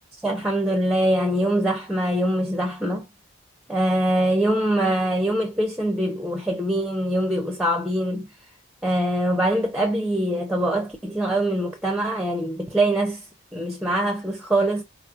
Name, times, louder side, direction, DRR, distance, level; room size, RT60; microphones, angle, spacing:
voice 1, 0.2-3.1 3.7-8.3 8.8-13.2 13.5-14.8, right 1 dB, 5° right, 0.5 m, -23 dB
4.0 x 3.0 x 2.4 m
head